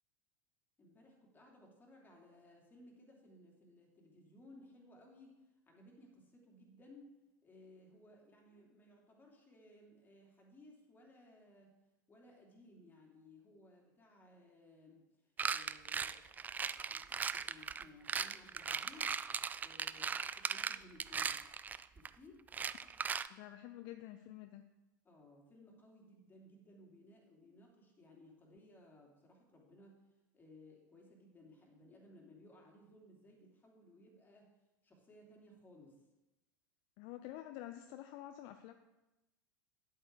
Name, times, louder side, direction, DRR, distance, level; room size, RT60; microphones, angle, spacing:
voice 1, 0.8-7.1 7.4-11.7 12.1-19.2 19.6-21.4 21.9-22.4 25.0-30.0 30.3-34.5 34.8-36.0, left 1 dB, 15° left, 0 dB, 2.9 m, -61 dB
sound 1, 15.4-22.1 22.5-23.3, right 6 dB, 15° right, 0.3 m, -38 dB
voice 2, 23.3-24.6 37.0-38.7, left 13 dB, 45° left, 8 dB, 0.6 m, -49 dB
10.5 x 7.9 x 4.7 m, 1.0 s
figure-of-eight pair, 90°, 11 cm